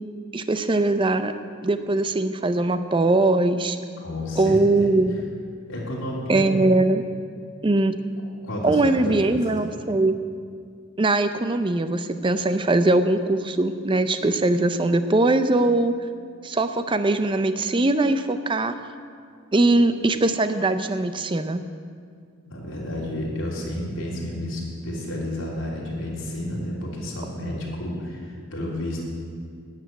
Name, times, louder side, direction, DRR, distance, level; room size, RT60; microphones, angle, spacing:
voice 1, 0.3-1.3 1.6-3.8 4.4-5.2 6.3-7.0 7.6-8.0 8.6-10.2 11.0-15.9 16.4-18.8 19.5-21.7, right 2 dB, 25° right, 10 dB, 0.5 m, -21 dB
voice 2, 4.0-4.9 5.7-6.6 8.4-9.4 9.7-9.9 22.4-29.0, left 1 dB, 65° left, -4 dB, 3.1 m, -31 dB
10.5 x 6.8 x 9.2 m, 2.2 s
head